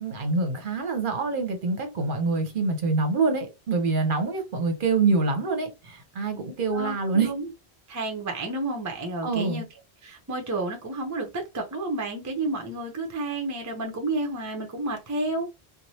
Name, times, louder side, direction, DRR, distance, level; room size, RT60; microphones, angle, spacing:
voice 1, 0.0-7.3 9.2-9.6, right 4 dB, 55° right, 0.8 m, -25 dB
voice 2, 6.7-7.5 7.9-9.7 10.0-15.5, right 2 dB, 25° right, 0.5 m, -31 dB
3.1 x 2.1 x 2.7 m
omnidirectional pair, 1.1 m